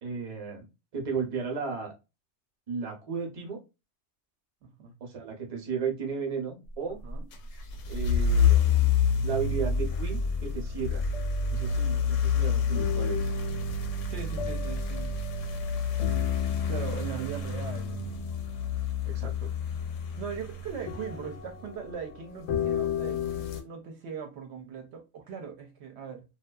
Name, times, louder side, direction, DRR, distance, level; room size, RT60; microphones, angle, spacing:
voice 1, 0.0-0.6 0.9-1.9 2.7-3.6 5.0-7.0 7.9-8.9 9.2-11.0 11.5-13.3 19.1-19.5, right 5 dB, 40° right, 0.6 m, -34 dB
voice 2, 4.6-4.9 7.0-7.3 14.1-15.2 16.6-18.0 20.2-26.2, right 6 dB, 70° right, 0.8 m, -39 dB
sound 1, 7.1-23.6, left 6 dB, 80° left, 0.9 m, -28 dB
2.6 x 2.2 x 2.2 m
omnidirectional pair, 1.3 m